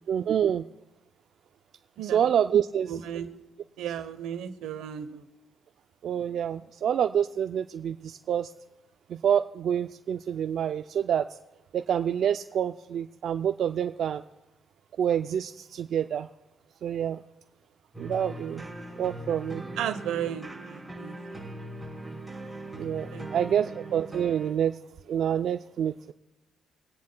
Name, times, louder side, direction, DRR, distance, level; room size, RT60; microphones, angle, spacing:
voice 1, 0.1-0.6 2.0-3.0 6.0-8.5 9.1-11.4 11.7-14.2 15.0-16.3 16.8-17.2 18.0-18.6 19.0-19.6 22.8-24.8 25.1-25.9, right 9 dB, 65° right, 8 dB, 0.3 m, -27 dB
voice 2, 2.9-3.3 3.8-5.2 19.8-21.5 23.1-23.3, right 9 dB, 90° right, 9 dB, 0.9 m, -34 dB
sound 1, 17.9-24.5, right 1 dB, ahead, 4.4 m, -40 dB
26.0 x 9.4 x 2.2 m, 0.98 s
cardioid pair, 90°, 0 cm